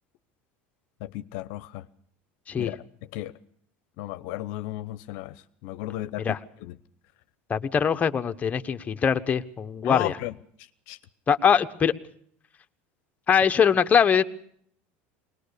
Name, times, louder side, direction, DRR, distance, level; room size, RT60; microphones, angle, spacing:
voice 1, 1.0-1.9 2.6-3.4 4.0-6.8 9.8-11.0, left 16 dB, 70° left, 0.8 m, -35 dB
voice 2, 7.5-10.1 11.3-11.9 13.3-14.2, left 7 dB, 25° left, 1.1 m, -22 dB
21.5 x 19.5 x 6.7 m
supercardioid pair, 120°, 6 cm